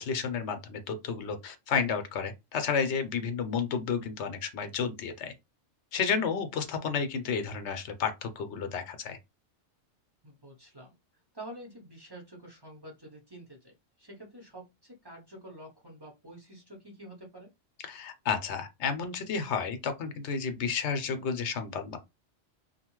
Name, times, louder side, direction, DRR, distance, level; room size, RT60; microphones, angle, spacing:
voice 1, 0.0-5.3 5.9-9.2 17.8-22.0, left 6 dB, 70° left, 0.9 m, -31 dB
voice 2, 10.2-10.9 11.3-17.5, right 1 dB, 25° right, 0.7 m, -48 dB
2.7 x 2.3 x 2.9 m
omnidirectional pair, 1.3 m